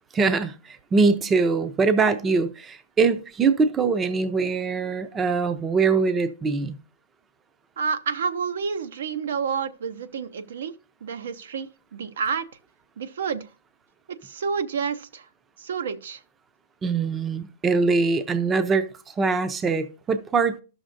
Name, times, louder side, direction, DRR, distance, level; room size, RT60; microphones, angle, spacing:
voice 1, 0.1-6.8 16.8-20.6, right 4 dB, 15° right, 0.5 m, -23 dB
voice 2, 7.8-10.7 11.0-12.5 13.0-13.5 14.2-15.3 15.6-16.2, right 6 dB, 80° right, 0.7 m, -29 dB
13.0 x 6.3 x 2.5 m
hypercardioid pair, 155°, 0 cm